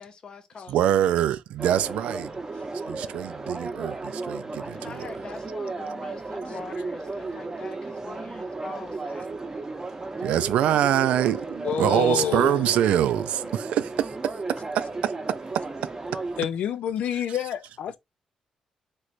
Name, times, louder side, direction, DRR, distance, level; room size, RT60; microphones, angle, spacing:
voice 1, 0.0-1.2 4.7-9.3, left 5 dB, 45° left, 0.8 m, -44 dB
voice 2, 0.7-2.3 2.7-5.1 10.2-16.2, right 11 dB, 90° right, 0.3 m, -25 dB
sound 1, 1.6-16.4, right 3 dB, 25° right, 0.8 m, -34 dB
voice 3, 11.6-12.8 16.4-18.0, left 9 dB, 80° left, 0.4 m, -28 dB
3.1 x 3.1 x 2.5 m
cardioid pair, 105°, 2 cm